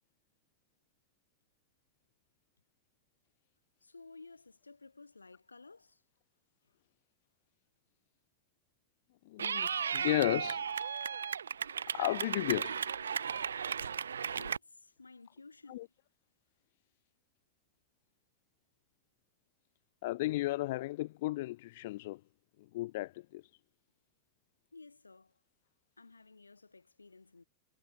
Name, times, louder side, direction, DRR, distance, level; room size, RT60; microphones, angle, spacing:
voice 1, 3.8-6.0 14.4-15.9 24.7-25.4 26.0-27.4, left 3 dB, 80° left, 6.3 m, -55 dB
voice 2, 9.3-10.7 11.9-12.8 15.7-15.9 20.0-22.2 22.7-23.4, left 18 dB, 50° left, 0.6 m, -34 dB
Clapping / Cheering, 9.4-14.6, right 7 dB, 70° right, 0.5 m, -35 dB
figure-of-eight pair, 90°, 0 cm